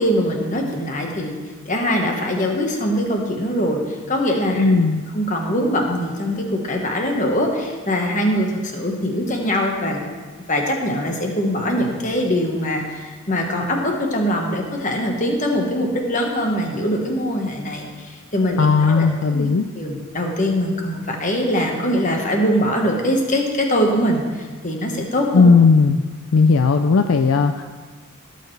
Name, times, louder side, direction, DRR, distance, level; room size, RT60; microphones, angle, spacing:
voice 1, 0.0-1.4 1.7-4.8 5.1-10.0 10.5-19.5 19.7-25.5, equal, 35° left, 1 dB, 1.3 m, -22 dB
voice 2, 4.6-5.0 18.6-19.6 25.3-26.0 26.3-27.6, left 4 dB, 65° left, 7 dB, 0.4 m, -15 dB
16.5 x 6.8 x 3.3 m, 1.4 s
head